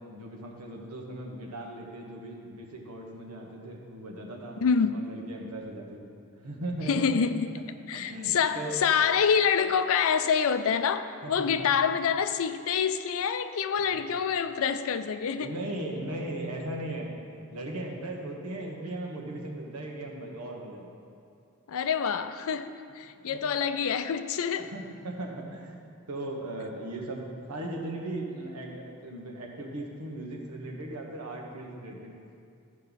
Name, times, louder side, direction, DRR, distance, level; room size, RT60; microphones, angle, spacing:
voice 1, 0.1-4.6 4.9-6.1 6.4-7.1 7.9-8.9 11.2-11.8 13.9-14.0 15.4-17.1 17.5-20.9 23.2-23.4 24.6-25.7 26.1-32.1, right 1 dB, 90° right, 0 dB, 1.4 m, -38 dB
voice 2, 4.6-5.1 6.9-7.5 7.9-15.5 21.7-24.7, left 6 dB, 65° left, 11 dB, 0.4 m, -26 dB
13.5 x 5.3 x 4.1 m, 2.5 s
head